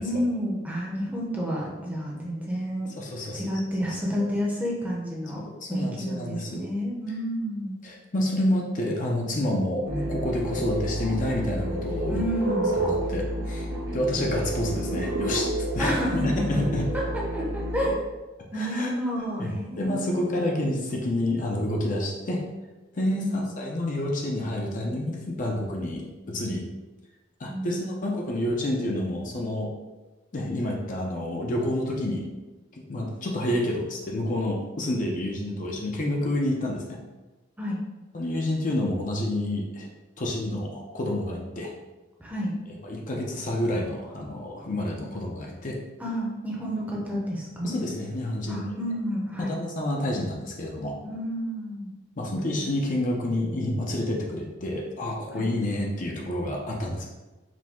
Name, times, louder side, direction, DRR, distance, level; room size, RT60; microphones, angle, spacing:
voice 1, 0.0-2.9 3.3-5.4 5.7-7.8 12.1-12.8 15.8-16.7 16.9-18.0 18.5-20.3 23.1-23.4 27.5-28.1 37.6-37.8 42.2-42.5 46.0-47.7 48.5-49.6 51.0-51.9 55.3-55.5, equal, 10° right, -4 dB, 0.7 m, -30 dB
voice 2, 3.0-3.4 5.4-6.6 7.8-12.2 12.7-13.7 13.9-15.9 16.2-16.9 18.5-18.9 19.4-22.4 22.9-26.7 27.4-29.7 30.3-32.3 32.7-37.0 38.1-39.9 40.2-41.7 42.8-45.8 47.6-48.7 49.4-51.0 52.2-57.1, left 1 dB, 40° left, -1 dB, 0.6 m, -29 dB
sound 1, 9.8-17.9, right 1 dB, 75° right, 0.8 m, -30 dB
4.9 x 2.1 x 3.6 m, 1.1 s
head